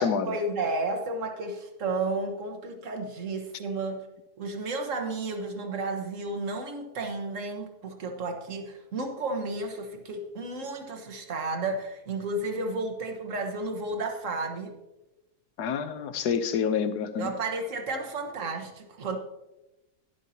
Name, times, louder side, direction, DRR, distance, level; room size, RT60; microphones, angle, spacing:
voice 1, 0.0-4.0 4.4-14.7 17.2-19.2, right 2 dB, 55° right, 4 dB, 1.6 m, -32 dB
voice 2, 15.6-17.3, left 7 dB, 85° left, 10 dB, 1.3 m, -27 dB
12.0 x 10.5 x 2.8 m, 0.99 s
omnidirectional pair, 1.7 m